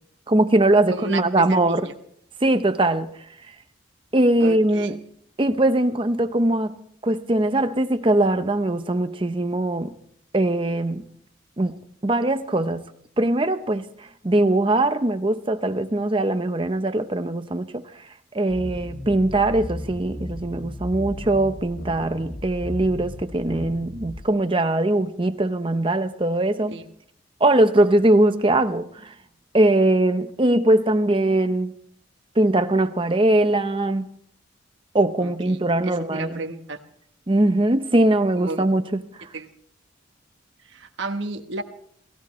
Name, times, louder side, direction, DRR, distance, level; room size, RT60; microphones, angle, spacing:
voice 1, 0.3-1.9 2.4-3.1 4.1-5.0 5.4-6.8 7.0-9.9 10.3-11.0 11.6-11.8 12.0-12.9 13.2-13.9 14.2-17.8 18.3-26.8 27.4-29.1 29.5-31.7 32.4-34.1 34.9-36.4 37.3-39.0, right 1 dB, 25° right, 0.8 m, -21 dB
voice 2, 0.9-1.9 4.4-4.9 26.7-26.8 35.2-36.8 38.3-38.7 39.3-39.5 40.7-41.6, right 2 dB, 65° right, 1.2 m, -33 dB
sound 1, 18.5-24.2, left 1 dB, 40° left, 1.4 m, -35 dB
29.0 x 15.5 x 3.2 m
head